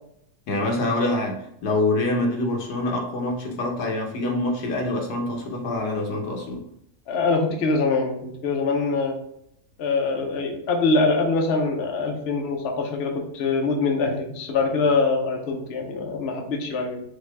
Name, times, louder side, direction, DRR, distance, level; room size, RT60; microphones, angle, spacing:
voice 1, 0.5-6.6, left 2 dB, 75° left, 1 dB, 1.5 m, -25 dB
voice 2, 7.1-9.2 9.8-17.0, left 3 dB, 50° left, 2 dB, 0.9 m, -24 dB
5.6 x 2.8 x 3.4 m, 0.74 s
omnidirectional pair, 1.7 m